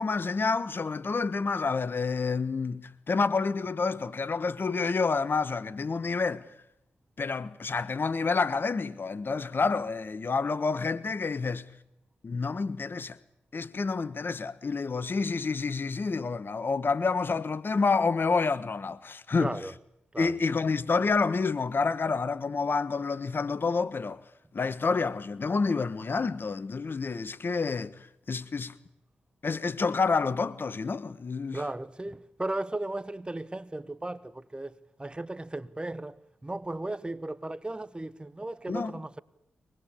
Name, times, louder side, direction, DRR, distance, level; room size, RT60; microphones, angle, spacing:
voice 1, 0.0-6.4 7.2-11.6 12.2-13.2 13.5-19.5 20.2-24.2 24.5-28.0 28.3-28.7 29.4-31.6 38.7-39.0, left 4 dB, 50° left, 1.4 m, -28 dB
voice 2, 19.4-19.7 20.1-20.4 31.5-39.2, right 2 dB, 20° right, 1.2 m, -36 dB
24.0 x 20.5 x 8.5 m
supercardioid pair, 45°, 5 cm